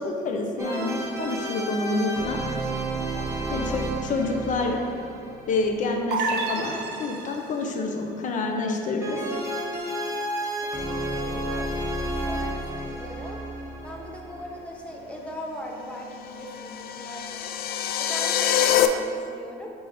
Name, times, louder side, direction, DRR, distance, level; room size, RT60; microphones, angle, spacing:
voice 1, 0.0-2.4 3.5-4.8 5.5-9.2, left 3 dB, 50° left, 3 dB, 0.8 m, -28 dB
sound 1, 0.6-6.5 9.0-14.8, right 1 dB, 15° right, 0.9 m, -31 dB
voice 2, 3.2-3.7 10.7-11.7 12.2-13.4 13.8-17.5 18.0-19.7, equal, 5° left, -1 dB, 1.0 m, -39 dB
sound 2, 6.1-7.7, right 3 dB, 75° right, 0.6 m, -29 dB
sound 3, 16.3-18.9, left 11 dB, 65° left, 0.4 m, -25 dB
9.3 x 3.6 x 3.1 m, 2.4 s
cardioid pair, 110°, 17 cm